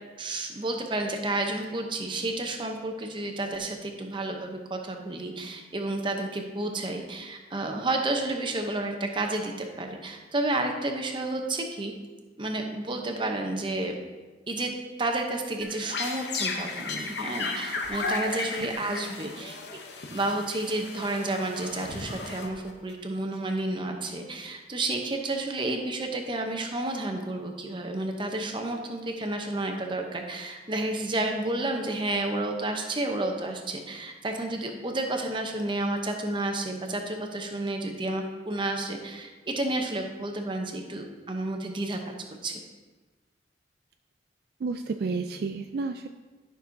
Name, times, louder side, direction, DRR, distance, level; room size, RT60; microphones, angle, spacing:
voice 1, 0.2-11.9 12.4-14.0 14.5-14.7 15.0-19.6 20.1-42.0 42.4-42.6, right 2 dB, 25° right, 3 dB, 0.8 m, -31 dB
sound 1, 15.6-22.9, left 3 dB, 65° left, 0.8 m, -34 dB
voice 2, 44.6-46.1, right 4 dB, 55° right, 6 dB, 0.3 m, -31 dB
12.0 x 6.1 x 2.7 m, 1.3 s
head